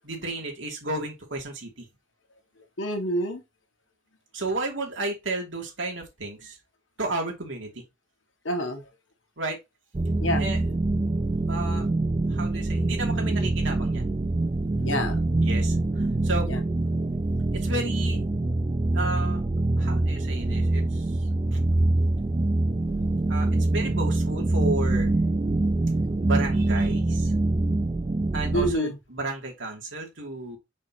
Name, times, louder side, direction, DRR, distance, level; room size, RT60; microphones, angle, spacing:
voice 1, 0.0-1.9 4.3-6.6 7.0-7.8 9.4-9.6 10.4-10.6 11.5-11.9 12.3-14.1 15.4-16.5 17.5-18.2 18.9-19.4 19.8-21.0 21.5-21.6 23.3-25.1 26.2-27.3 28.3-30.6, right 2 dB, 75° right, 2.9 m, -32 dB
voice 2, 2.8-3.4 8.5-8.9 10.2-10.5 14.8-15.2 16.5-16.6 28.5-29.0, equal, 80° left, 1.8 m, -27 dB
sound 1, 9.9-28.7, right 2 dB, 25° right, 0.4 m, -25 dB
6.2 x 6.0 x 3.0 m
head